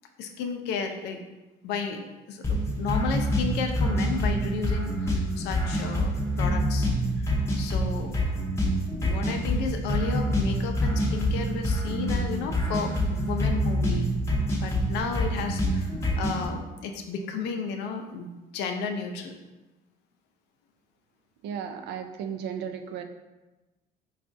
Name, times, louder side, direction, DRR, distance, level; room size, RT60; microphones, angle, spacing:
voice 1, 0.2-1.2 1.6-6.9 7.2-8.1 9.0-14.1 14.6-18.3 18.5-19.3, left 5 dB, 80° left, 4 dB, 0.5 m, -33 dB
sound 1, 2.4-16.4, equal, 15° left, 0.7 m, -26 dB
voice 2, 21.4-23.0, right 7 dB, 80° right, 6 dB, 0.4 m, -34 dB
4.8 x 2.3 x 2.5 m, 1.1 s
cardioid pair, 110°, 17 cm